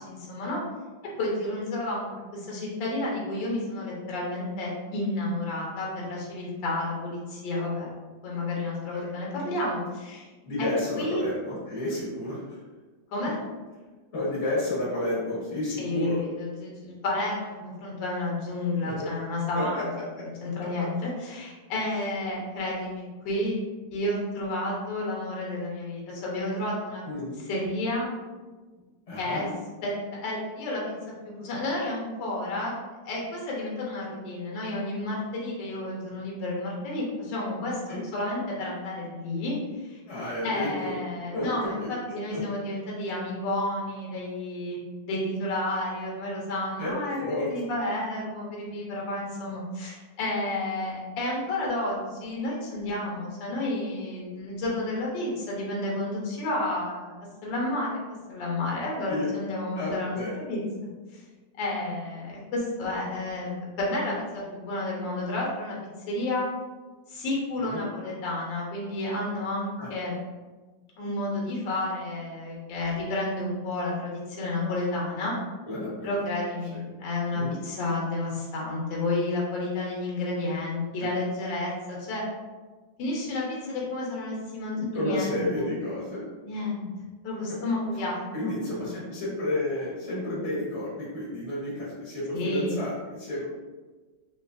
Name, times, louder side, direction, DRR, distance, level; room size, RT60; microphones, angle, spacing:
voice 1, 0.1-0.6 1.2-7.9 8.2-10.3 10.6-10.7 11.0-11.3 13.1-13.4 15.8-19.8 20.4-23.6 23.9-27.0 27.5-28.1 29.2-29.5 29.8-29.9 30.2-30.8 31.2-32.8 33.0-37.8 38.1-40.0 40.4-44.8 45.1-57.1 57.4-58.0 58.3-60.2 60.5-60.6 61.1-61.2 61.6-65.8 66.1-66.5 67.1-70.2 71.0-75.3 76.0-82.2 83.0-85.7 86.4-86.8 87.2-88.2 88.4-88.5 92.3-92.8, left 2 dB, 80° left, -3 dB, 1.5 m, -31 dB
voice 2, 10.4-12.6 14.1-16.2 18.8-19.1 19.5-19.8 20.2-20.3 27.1-27.5 28.7-28.8 29.1-29.5 37.9-38.0 40.1-40.9 41.3-41.9 42.3-42.4 46.8-47.5 59.1-59.3 59.7-60.4 67.6-67.8 69.8-69.9 75.6-76.2 76.7-77.6 81.0-81.1 84.8-86.2 87.5-87.6 88.3-93.4, left 1 dB, 50° left, -7 dB, 0.9 m, -31 dB
3.3 x 2.9 x 2.4 m, 1.3 s
omnidirectional pair, 2.0 m